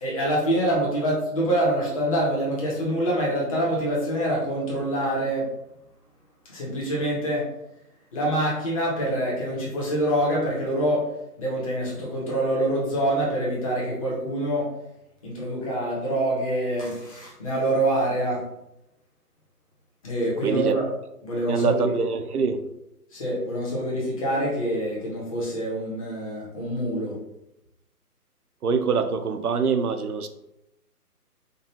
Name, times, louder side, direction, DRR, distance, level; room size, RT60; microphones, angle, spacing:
voice 1, 0.0-5.5 6.5-7.5 8.1-11.1 11.4-14.7 15.2-18.4 20.0-20.8 21.2-21.9 23.1-27.2, right 1 dB, 20° left, -4 dB, 1.0 m, -25 dB
voice 2, 20.4-20.8 21.5-22.6 28.6-30.3, right 5 dB, 70° right, 8 dB, 0.6 m, -24 dB
5.1 x 2.4 x 2.8 m, 0.86 s
figure-of-eight pair, 150°, 47 cm